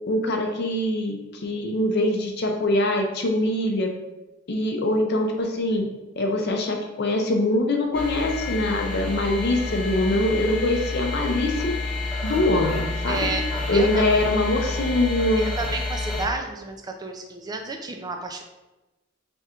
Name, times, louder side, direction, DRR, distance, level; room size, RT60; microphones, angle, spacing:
voice 1, 0.1-3.9 4.5-5.9 6.2-11.8 12.2-13.3 13.7-15.4, left 1 dB, 55° left, 2 dB, 0.5 m, -23 dB
sound 1, 7.9-16.3, left 2 dB, 5° left, 1.0 m, -29 dB
voice 2, 13.1-13.4 13.7-14.1 15.4-18.4, right 3 dB, 20° right, 4 dB, 0.4 m, -31 dB
3.4 x 2.4 x 4.3 m, 1.0 s
head